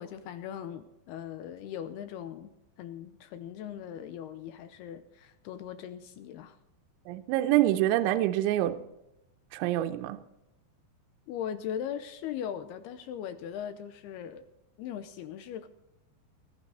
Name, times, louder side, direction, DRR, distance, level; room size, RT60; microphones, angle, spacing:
voice 1, 0.0-2.5 2.8-6.6 11.3-14.5 14.8-15.7, left 9 dB, 80° left, 2.4 m, -39 dB
voice 2, 7.1-8.8 9.5-10.2, right 14 dB, 85° right, 3.0 m, -26 dB
19.5 x 12.0 x 3.9 m
omnidirectional pair, 5.2 m